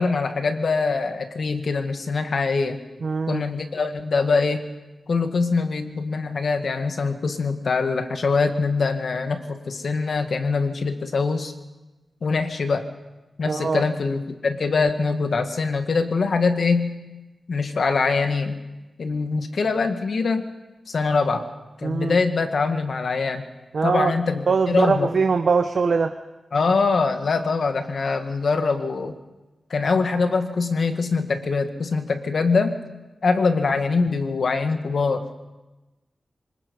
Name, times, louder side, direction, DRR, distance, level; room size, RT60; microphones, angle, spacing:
voice 1, 0.0-2.8 3.3-4.7 5.1-11.5 12.2-12.9 13.4-17.0 17.5-18.6 19.0-20.4 20.9-21.5 21.8-23.4 23.8-25.1 26.5-29.2 29.7-32.8 33.2-35.4, left 4 dB, 65° left, 7 dB, 1.8 m, -23 dB
voice 2, 3.0-3.4 13.5-13.8 21.8-22.2 23.7-24.1 24.5-26.1, right 5 dB, 65° right, 8 dB, 0.8 m, -22 dB
25.0 x 20.5 x 5.4 m, 1.1 s
wide cardioid pair, 90°, 0 cm